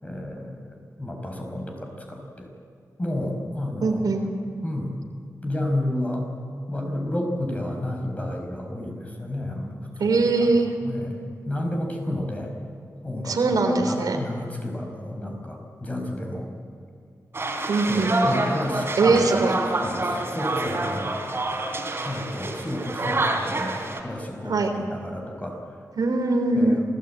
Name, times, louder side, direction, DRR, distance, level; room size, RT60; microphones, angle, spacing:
voice 1, 0.0-2.5 3.0-4.0 4.6-5.0 5.4-6.2 6.7-9.8 10.0-10.5 10.8-11.2 11.5-12.5 13.0-13.4 13.8-16.5 17.9-19.2 19.8-21.2 22.0-23.7 24.0-24.6 24.9-25.5 26.5-26.8, left 1 dB, 20° left, 2 dB, 5.2 m, -31 dB
voice 2, 3.8-4.2 10.0-10.7 13.2-14.2 17.7-18.4 19.0-19.5 24.5-24.7 26.0-26.8, right 3 dB, 85° right, 3 dB, 3.4 m, -21 dB
sound 1, 17.3-24.0, right 2 dB, 40° right, 3.7 m, -27 dB
27.5 x 17.5 x 9.0 m, 2.3 s
wide cardioid pair, 120°, 6 cm